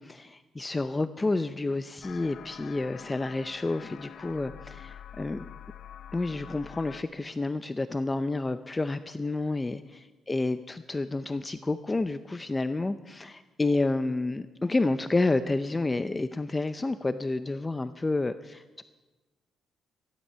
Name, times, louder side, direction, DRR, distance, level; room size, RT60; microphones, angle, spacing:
voice 1, 0.0-5.5 6.1-9.8 10.3-18.8, left 2 dB, 20° left, 11 dB, 0.5 m, -29 dB
sound 1, 2.0-7.0, left 9 dB, 65° left, 0.6 m, -46 dB
15.0 x 11.0 x 5.6 m, 1.2 s
cardioid pair, 90°, 0 cm